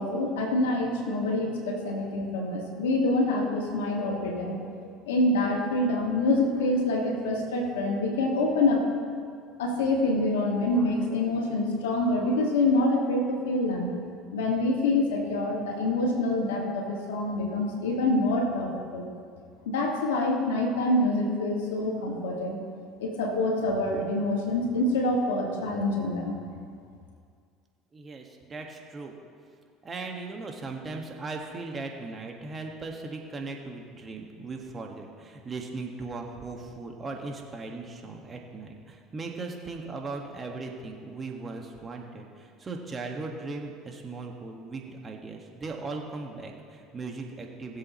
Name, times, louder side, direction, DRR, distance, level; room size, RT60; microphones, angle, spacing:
voice 1, 0.0-8.8 9.6-13.9 14.3-19.1 19.7-22.6 23.0-26.4, left 2 dB, 85° left, 0 dB, 2.1 m, -26 dB
voice 2, 27.9-29.1 29.8-47.8, right 3 dB, 30° right, 1 dB, 1.8 m, -38 dB
20.5 x 7.6 x 3.2 m, 2.2 s
hypercardioid pair, 80°, 0 cm